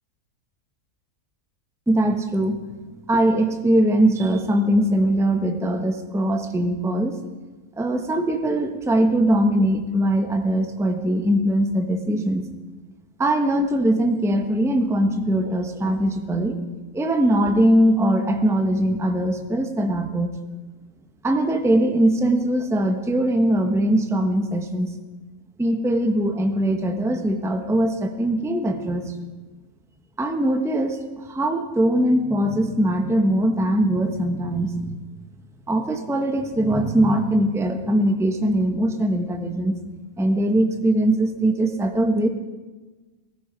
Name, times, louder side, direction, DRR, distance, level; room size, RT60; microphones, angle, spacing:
voice 1, 1.9-2.6 3.1-7.2 7.8-12.5 13.2-16.6 16.9-20.3 21.2-24.9 25.6-29.2 30.2-31.0 31.3-35.0 35.7-39.8 40.2-42.3, right 1 dB, ahead, 6 dB, 0.8 m, -21 dB
17.5 x 14.5 x 5.1 m, 1.3 s
omnidirectional pair, 1.7 m